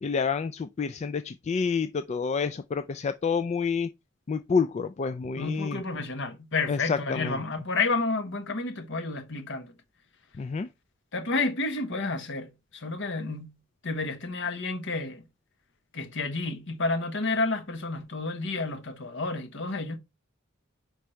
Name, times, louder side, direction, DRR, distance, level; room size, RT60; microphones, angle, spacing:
voice 1, 0.0-3.9 4.3-5.8 6.7-7.4 10.4-10.7, left 5 dB, 35° left, 0.3 m, -28 dB
voice 2, 5.4-9.7 11.1-13.5 13.8-15.2 15.9-20.0, left 3 dB, 65° left, 1.3 m, -30 dB
5.2 x 4.6 x 4.4 m
head